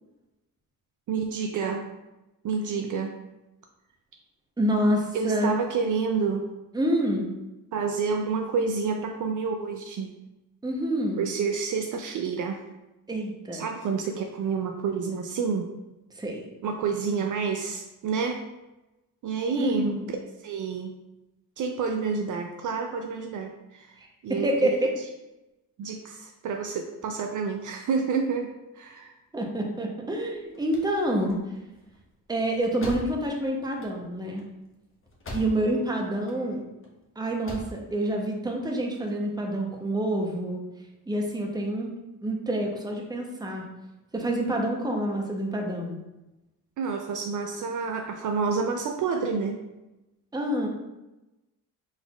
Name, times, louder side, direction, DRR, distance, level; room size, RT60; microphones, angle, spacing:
voice 1, 1.1-1.9 2.4-3.2 5.1-6.5 7.7-10.1 11.2-12.6 13.5-15.7 16.6-18.4 19.2-20.0 20.4-20.9 21.6-23.9 24.2-24.8 25.8-29.1 35.4-35.8 46.8-49.6, right 5 dB, 55° right, 3 dB, 0.5 m, -29 dB
voice 2, 4.6-5.5 6.7-7.3 10.6-11.2 13.1-13.6 16.2-16.5 19.6-20.1 24.0-25.0 29.3-31.4 32.3-34.4 35.3-36.6 37.2-40.6 41.1-41.9 42.2-43.6 44.1-46.0 50.3-50.7, right 1 dB, 10° right, 1 dB, 0.7 m, -27 dB
sound 1, 30.3-35.9 36.1-36.9 37.2-37.8, left 1 dB, 35° left, 1.0 m, -41 dB
3.9 x 3.9 x 2.3 m, 1.0 s
cardioid pair, 80°, 38 cm